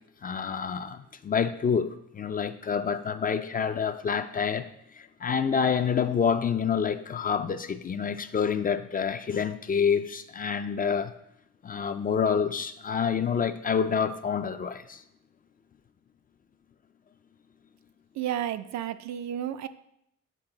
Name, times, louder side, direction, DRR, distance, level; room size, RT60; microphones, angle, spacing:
voice 1, 0.2-4.7 4.9-11.1 11.6-15.0, left 6 dB, 30° left, 0.4 m, -27 dB
voice 2, 18.2-19.7, right 11 dB, 65° right, 0.5 m, -32 dB
7.3 x 4.4 x 3.9 m
cardioid pair, 90°, 30 cm